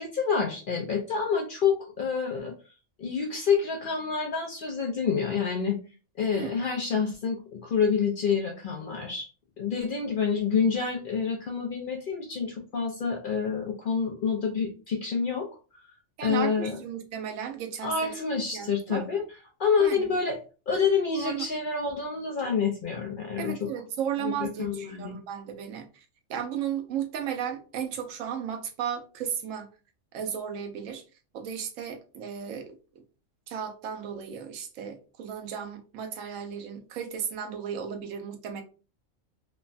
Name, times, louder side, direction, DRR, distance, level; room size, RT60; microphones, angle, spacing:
voice 1, 0.0-2.5 3.0-5.8 6.2-9.3 9.6-15.5 16.2-16.8 17.8-19.2 19.6-20.4 20.7-23.7 24.2-25.2, left 6 dB, 60° left, 0.5 m, -28 dB
voice 2, 16.2-18.2 18.5-19.0 19.8-20.1 21.1-21.5 23.4-25.9 26.3-29.7 30.1-31.0 31.3-32.8 33.5-38.6, right 8 dB, 90° right, 1.0 m, -34 dB
3.1 x 2.1 x 2.4 m
omnidirectional pair, 1.3 m